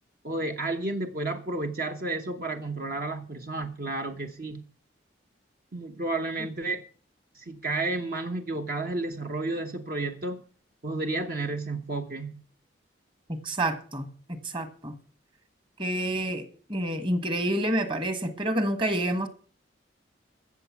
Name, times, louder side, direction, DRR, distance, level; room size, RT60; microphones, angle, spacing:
voice 1, 0.2-4.6 5.7-6.8 7.3-10.4 10.8-12.3, right 2 dB, 50° right, 1.0 m, -31 dB
voice 2, 13.3-14.9 15.8-16.4 16.7-19.3, right 1 dB, 25° right, 1.4 m, -28 dB
14.5 x 7.1 x 5.9 m
head